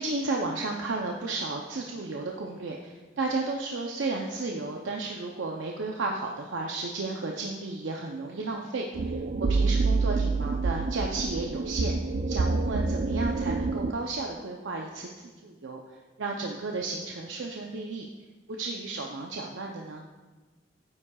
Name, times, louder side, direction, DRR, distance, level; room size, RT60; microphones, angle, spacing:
voice 1, 0.0-11.9 12.3-18.1 18.5-20.0, right 3 dB, 85° right, 0 dB, 0.6 m, -33 dB
sound 1, 8.9-13.9, right 3 dB, 50° right, 0.4 m, -27 dB
9.9 x 9.5 x 2.3 m, 1.3 s
head